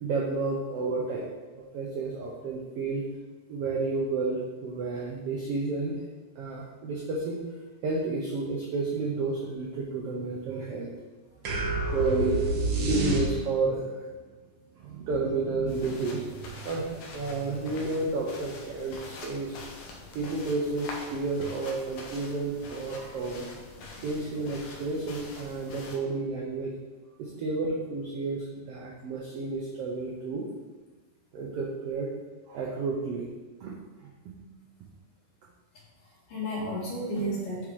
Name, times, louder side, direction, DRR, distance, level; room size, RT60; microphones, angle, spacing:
voice 1, 0.0-3.0 3.5-6.0 6.4-7.4 7.8-10.9 11.9-12.4 12.9-14.0 14.8-19.5 20.1-23.5 24.0-26.7 27.2-30.5 31.3-32.1 32.5-33.3 33.6-33.7, right 3 dB, 90° right, -2 dB, 1.3 m, -31 dB
sound 1, 11.4-13.7, right 2 dB, 65° right, 1.2 m, -28 dB
sound 2, 15.7-26.0, left 3 dB, 70° left, 1.5 m, -44 dB
voice 2, 36.3-37.7, equal, 85° left, -11 dB, 3.4 m, -33 dB
8.6 x 4.8 x 3.2 m, 1.3 s
omnidirectional pair, 3.7 m